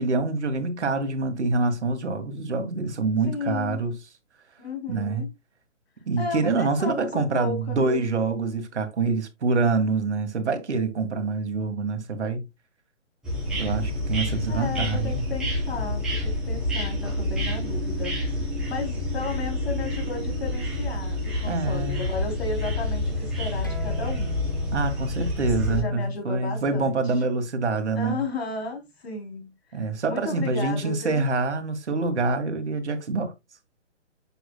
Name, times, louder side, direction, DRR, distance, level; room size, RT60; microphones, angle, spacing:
voice 1, 0.0-4.0 4.9-5.2 6.0-12.4 13.5-15.2 21.5-22.0 24.7-28.2 29.7-33.3, right 3 dB, 70° right, 1.8 m, -26 dB
voice 2, 3.3-3.8 4.6-5.3 6.2-8.1 14.5-24.4 25.7-27.2 28.0-31.3, left 3 dB, 60° left, 3.7 m, -34 dB
sound 1, 13.2-25.8, left 1 dB, ahead, 1.8 m, -28 dB
sound 2, 23.6-28.8, equal, 20° left, 0.5 m, -46 dB
7.8 x 6.3 x 2.3 m
hypercardioid pair, 175°, 36 cm